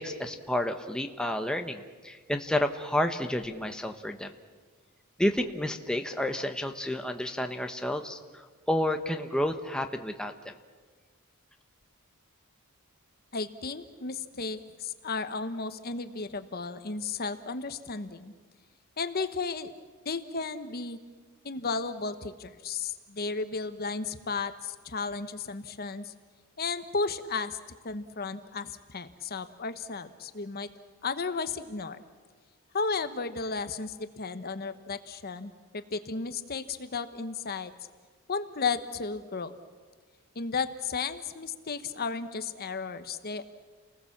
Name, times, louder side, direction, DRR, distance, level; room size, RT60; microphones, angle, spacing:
voice 1, 0.0-4.3 5.2-8.2 8.7-10.5, left 1 dB, 5° left, 5 dB, 1.1 m, -30 dB
voice 2, 13.3-18.3 19.0-19.7 20.0-21.0 21.4-26.1 26.6-27.6 27.8-30.7 31.0-32.0 32.7-37.7 38.3-39.6 40.3-43.4, left 4 dB, 45° left, 10 dB, 1.0 m, -34 dB
29.5 x 20.0 x 7.3 m, 1.5 s
head